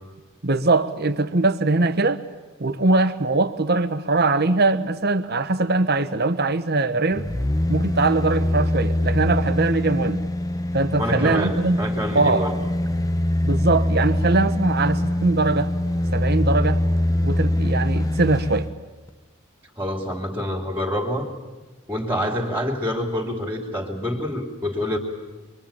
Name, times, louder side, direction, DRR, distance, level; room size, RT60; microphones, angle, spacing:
voice 1, 0.4-2.2 2.6-7.3 7.7-10.2 10.7-11.8 12.1-12.5 13.4-15.7 16.1-16.8 17.2-18.7, right 3 dB, 45° right, 1.2 m, -21 dB
sound 1, 7.1-18.7 19.1-19.2, left 1 dB, 15° left, 0.8 m, -23 dB
voice 2, 11.0-12.6 19.8-21.3 21.9-25.0, equal, 10° right, 2.8 m, -26 dB
25.5 x 23.5 x 8.8 m
head